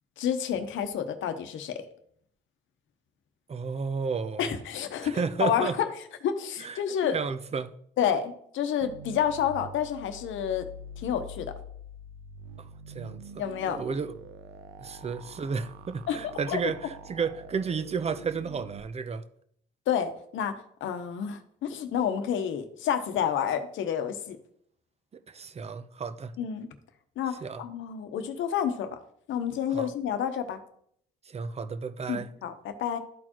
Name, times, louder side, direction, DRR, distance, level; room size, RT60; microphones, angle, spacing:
voice 1, 0.2-1.8 4.4-5.9 6.2-7.2 8.0-10.7 11.0-11.5 13.4-13.8 16.1-16.2 16.5-16.6 19.9-20.5 20.8-24.4 26.4-26.7 27.2-29.0 29.3-30.6 32.1-33.0, left 8 dB, 80° left, 0.9 m, -29 dB
voice 2, 3.5-4.5 5.0-5.8 6.6-7.7 12.6-13.2 13.6-14.1 14.8-19.2 25.3-26.3 27.4-27.6 29.7-29.9 31.3-32.3, right 5 dB, 30° right, 0.6 m, -32 dB
sound 1, 8.8-18.8, right 1 dB, 85° right, 0.7 m, -45 dB
12.5 x 4.4 x 3.0 m
cardioid pair, 90°, 20 cm